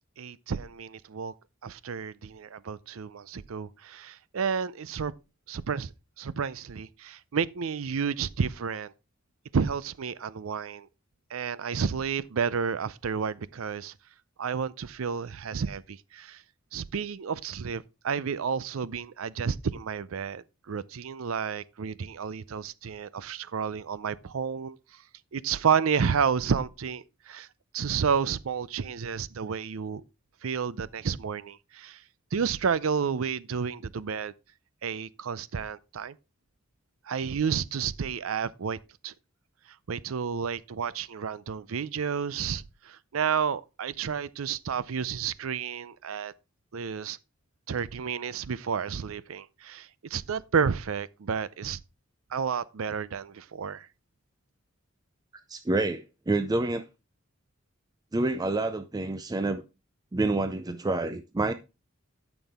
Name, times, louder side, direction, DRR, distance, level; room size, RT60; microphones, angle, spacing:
voice 1, 0.2-1.3 1.6-5.1 5.5-5.9 6.2-8.9 9.5-10.9 11.3-13.9 14.4-16.4 16.7-24.8 25.3-27.5 27.7-30.0 30.4-32.0 32.3-34.3 34.8-36.1 37.1-38.8 39.0-39.1 39.9-46.3 46.7-47.2 47.7-51.8 52.3-53.9, right 6 dB, 80° right, 0.5 m, -31 dB
voice 2, 55.5-56.8 58.1-59.6 60.1-61.5, right 2 dB, 20° right, 0.4 m, -28 dB
12.5 x 6.1 x 3.5 m
head